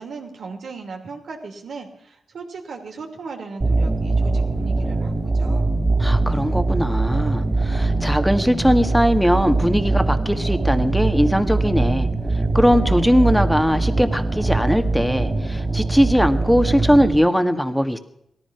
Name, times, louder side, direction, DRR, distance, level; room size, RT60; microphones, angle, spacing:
voice 1, 0.0-5.7, right 4 dB, 75° right, 2 dB, 2.7 m, -37 dB
sound 1, 3.6-17.2, right 3 dB, 40° right, 3.4 m, -22 dB
voice 2, 6.0-12.1 12.5-18.0, equal, ahead, 8 dB, 1.6 m, -20 dB
18.0 x 14.0 x 5.8 m, 0.76 s
cardioid pair, 55°, 0 cm